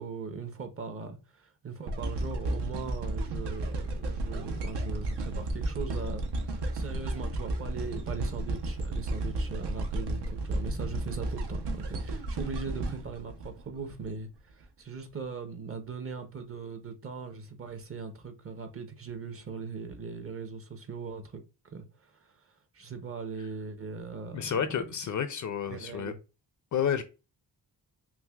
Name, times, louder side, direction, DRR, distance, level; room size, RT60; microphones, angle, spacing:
voice 1, 0.0-24.9 25.7-26.2, right 5 dB, 35° right, 0.6 m, -40 dB
sound 1, 1.9-14.1 14.6-14.7, right 2 dB, 80° right, 0.8 m, -33 dB
voice 2, 24.3-26.1 26.7-27.0, left 8 dB, 50° left, 0.4 m, -30 dB
5.7 x 2.0 x 2.3 m
wide cardioid pair, 140°, 40 cm